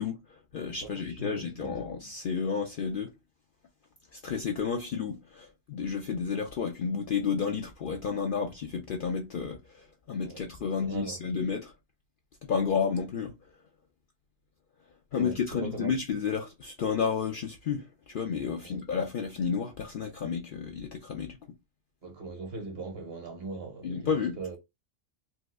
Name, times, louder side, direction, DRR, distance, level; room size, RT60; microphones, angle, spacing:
voice 1, 0.0-3.1 4.1-11.7 12.5-13.3 15.1-21.4 23.8-24.4, left 6 dB, 60° left, 0.6 m, -31 dB
voice 2, 0.8-1.9 10.2-11.3 15.1-16.0 18.6-18.8 22.0-24.6, right 3 dB, 55° right, 1.2 m, -40 dB
4.0 x 2.4 x 2.4 m
omnidirectional pair, 1.3 m